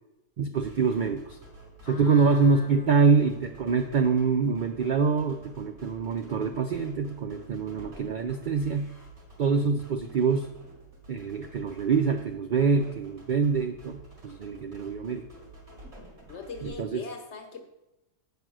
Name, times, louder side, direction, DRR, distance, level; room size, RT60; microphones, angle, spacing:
voice 1, 0.4-1.4 1.9-8.9 9.4-10.5 11.1-15.2 16.6-17.0, right 5 dB, 75° right, 6 dB, 0.4 m, -25 dB
sound 1, 0.5-16.7, right 2 dB, 50° right, 2.6 m, -50 dB
voice 2, 1.8-3.2 16.3-17.6, left 4 dB, 55° left, 5 dB, 1.2 m, -42 dB
7.7 x 5.2 x 6.1 m, 0.91 s
omnidirectional pair, 1.4 m